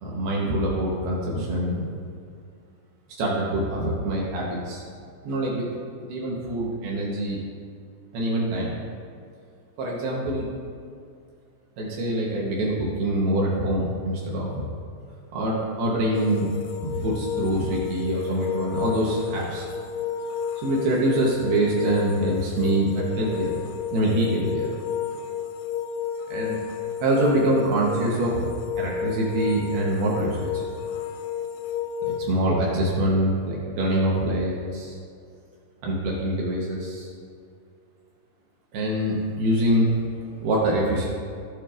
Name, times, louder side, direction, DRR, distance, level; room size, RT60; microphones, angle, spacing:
voice 1, 0.0-1.9 3.2-4.8 5.2-5.7 6.1-7.4 8.1-8.8 9.8-10.5 11.8-14.7 15.3-16.5 16.8-19.7 20.6-23.5 23.9-24.7 26.3-26.6 27.0-28.5 28.8-30.6 32.1-35.0 35.8-37.1 38.7-40.1 40.4-41.1, right 1 dB, 70° right, -4 dB, 2.7 m, -25 dB
sound 1, 16.1-32.2, left 8 dB, 85° left, 2.4 m, -31 dB
15.5 x 7.4 x 2.5 m, 2.4 s
omnidirectional pair, 5.3 m